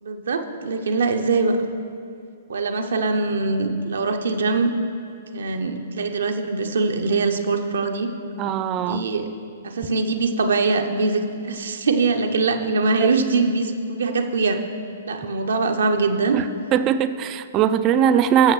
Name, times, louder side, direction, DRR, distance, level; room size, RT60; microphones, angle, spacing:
voice 1, 0.0-1.6 2.5-4.7 5.3-8.1 8.8-9.3 9.6-14.6 15.1-16.4, right 3 dB, 65° right, 6 dB, 0.7 m, -22 dB
voice 2, 8.4-9.0 13.0-13.1 16.7-18.5, right 9 dB, 25° right, 12 dB, 0.4 m, -20 dB
18.0 x 7.2 x 3.1 m, 2.4 s
figure-of-eight pair, 115°, 0 cm